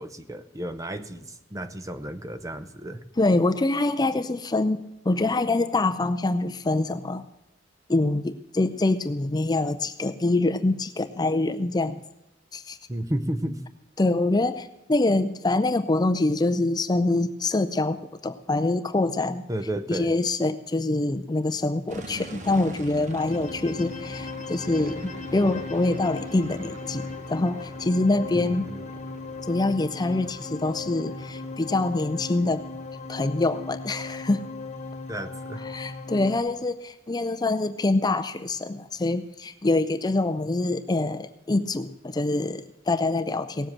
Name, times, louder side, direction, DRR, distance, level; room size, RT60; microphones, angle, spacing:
voice 1, 0.0-3.0 12.9-13.6 19.5-20.1 28.3-28.9 35.1-35.7, right 1 dB, 15° right, 10 dB, 0.7 m, -32 dB
voice 2, 3.2-7.2 7.9-12.0 12.5-12.8 14.0-19.4 19.9-28.7 29.5-32.6 33.1-34.5 35.6-43.7, left 2 dB, 20° left, 9 dB, 0.5 m, -25 dB
sound 1, 21.9-36.7, right 1 dB, 40° right, 1.1 m, -44 dB
sound 2, 22.8-36.4, left 3 dB, 40° left, 0.9 m, -37 dB
18.0 x 7.7 x 7.4 m, 0.92 s
head